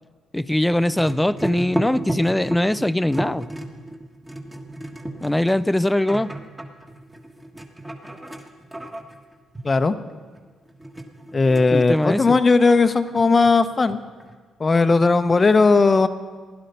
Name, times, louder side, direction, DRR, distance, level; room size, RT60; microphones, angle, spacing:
voice 1, 0.3-3.5 5.2-6.3 11.7-12.4, left 1 dB, 5° left, 17 dB, 0.4 m, -21 dB
sound 1, 0.8-12.6 12.9-14.3, right 1 dB, 10° right, 1.5 m, -33 dB
voice 2, 11.3-14.0 14.6-16.1, left 3 dB, 30° left, 11 dB, 0.8 m, -17 dB
16.0 x 11.5 x 5.4 m, 1.5 s
cardioid pair, 90°, 0 cm